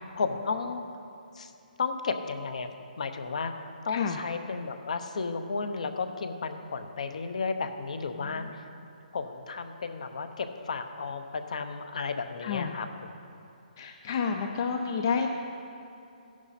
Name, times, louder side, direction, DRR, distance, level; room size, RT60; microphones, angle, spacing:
voice 1, 0.2-0.8 1.3-1.5 1.8-2.7 3.0-3.5 3.8-8.7 9.1-13.1, left 4 dB, 50° left, 8 dB, 0.9 m, -33 dB
voice 2, 8.1-8.5 12.4-12.7 13.8-15.3, left 6 dB, 25° left, 4 dB, 0.4 m, -30 dB
14.0 x 11.0 x 4.2 m, 2.8 s
hypercardioid pair, 175°, 5 cm